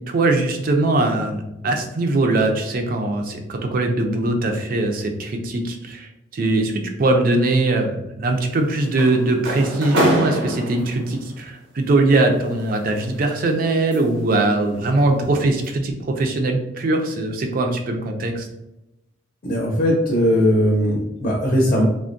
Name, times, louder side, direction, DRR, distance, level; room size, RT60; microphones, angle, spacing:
voice 1, 0.1-18.5, right 2 dB, 50° right, 4 dB, 0.4 m, -21 dB
sound 1, 8.3-11.2 12.4-14.3 14.7-15.0 15.4-15.7, equal, 85° right, 0.7 m, -25 dB
voice 2, 19.4-21.8, equal, 45° left, -2 dB, 0.6 m, -19 dB
3.4 x 2.1 x 2.5 m, 0.90 s
head